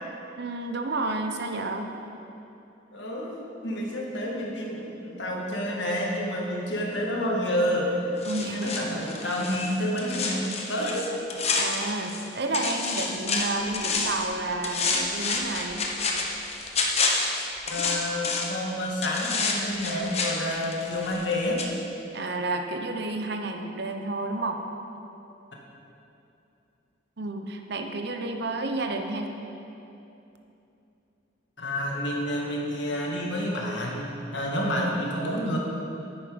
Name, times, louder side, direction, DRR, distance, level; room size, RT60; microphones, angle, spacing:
voice 1, 0.4-1.9 8.3-9.0 11.6-15.9 22.1-24.6 27.2-29.3, right 2 dB, 60° right, 4 dB, 0.9 m, -31 dB
voice 2, 2.9-3.4 3.6-8.1 8.5-11.1 17.7-21.6 31.6-34.0 34.3-35.6, left 1 dB, 65° left, -2 dB, 1.8 m, -29 dB
sound 1, 8.2-12.3 12.5-14.3 14.6-18.6 19.0-21.3 21.6-21.7, left 4 dB, 35° left, 1.0 m, -29 dB
10.0 x 9.0 x 5.2 m, 2.8 s
head